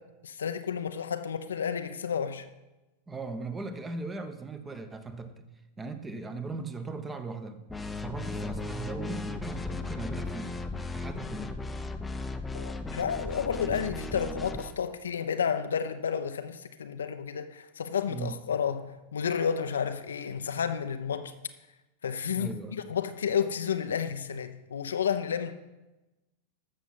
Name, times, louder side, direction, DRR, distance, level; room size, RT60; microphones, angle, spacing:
voice 1, 0.2-2.4 12.5-21.3 22.0-25.5, left 7 dB, 65° left, 0.7 m, -31 dB
voice 2, 3.1-5.3 5.8-7.6 8.0-10.5 10.9-11.5 18.1-18.4 22.3-22.8, right 3 dB, 15° right, 1.1 m, -38 dB
sound 1, 7.7-14.8, left 2 dB, 10° left, 0.8 m, -36 dB
12.5 x 7.3 x 5.9 m
figure-of-eight pair, 90°, 0 cm